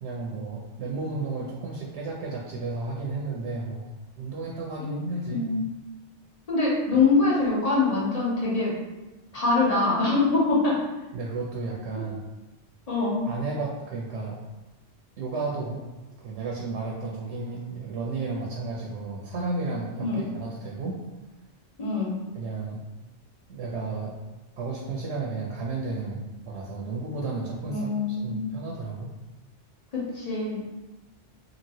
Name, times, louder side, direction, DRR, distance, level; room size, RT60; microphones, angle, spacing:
voice 1, 0.0-3.9 4.2-5.5 11.1-12.3 13.3-14.4 15.2-15.8 16.2-21.0 22.3-22.8 23.5-24.1 24.6-29.1, right 3 dB, 75° right, -2 dB, 0.8 m, -33 dB
voice 2, 5.3-5.6 6.5-8.7 9.3-10.8 12.9-13.2 20.0-20.2 21.8-22.2 27.7-28.5 29.9-30.6, left 3 dB, 35° left, -6 dB, 0.9 m, -24 dB
2.9 x 2.8 x 2.7 m, 1.1 s
omnidirectional pair, 1.2 m